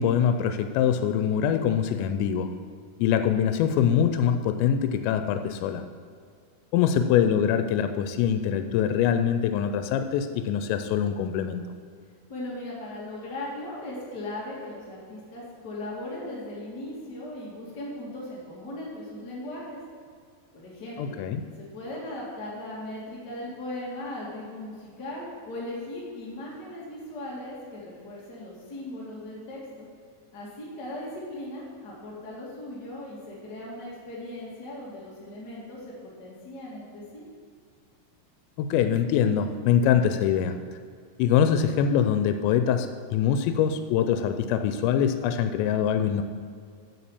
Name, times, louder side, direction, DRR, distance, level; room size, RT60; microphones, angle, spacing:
voice 1, 0.0-2.5 3.0-5.8 6.7-11.6 21.0-21.4 38.6-40.5 41.2-46.2, left 8 dB, 90° left, 8 dB, 2.8 m, -24 dB
voice 2, 12.3-19.8 20.5-21.2 21.6-29.9 30.3-37.2, left 1 dB, 55° left, -5 dB, 1.1 m, -38 dB
8.3 x 6.3 x 7.0 m, 2.1 s
omnidirectional pair, 5.0 m